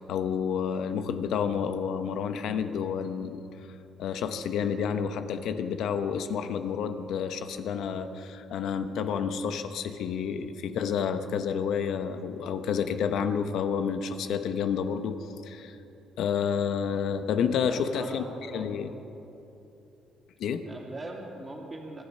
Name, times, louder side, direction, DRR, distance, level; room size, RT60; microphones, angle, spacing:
voice 1, 0.0-3.4 4.0-15.8 16.2-18.2 18.5-18.9 20.4-20.6, left 7 dB, 70° left, 8 dB, 1.0 m, -30 dB
voice 2, 17.6-18.7 20.6-22.0, right 2 dB, 25° right, -1 dB, 2.7 m, -41 dB
24.5 x 10.5 x 5.5 m, 3.0 s
cardioid pair, 110°, 0 cm